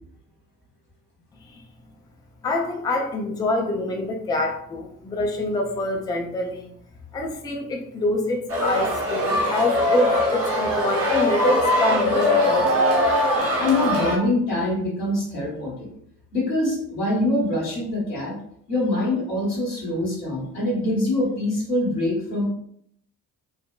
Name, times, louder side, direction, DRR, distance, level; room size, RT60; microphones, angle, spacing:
voice 1, 2.4-6.7 7.1-12.7, left 1 dB, 10° left, 1 dB, 0.4 m, -25 dB
sound 1, 8.5-14.2, left 1 dB, 30° right, 1.1 m, -21 dB
voice 2, 13.6-15.9 16.3-18.3 18.7-22.5, left 1 dB, 80° left, -6 dB, 1.2 m, -24 dB
3.7 x 2.1 x 2.2 m, 0.67 s
figure-of-eight pair, 40°, 46 cm